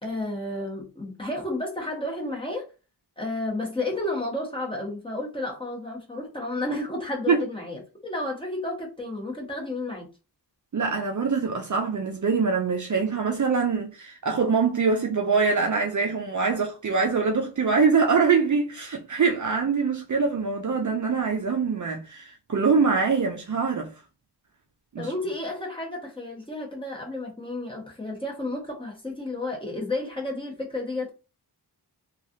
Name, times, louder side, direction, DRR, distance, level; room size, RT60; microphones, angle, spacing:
voice 1, 0.0-2.7 3.2-10.0 25.0-31.1, left 2 dB, 10° left, 1.2 m, -32 dB
voice 2, 10.7-23.9 24.9-25.1, right 5 dB, 45° right, 0.5 m, -24 dB
3.1 x 2.4 x 2.6 m
wide cardioid pair, 110°, 42 cm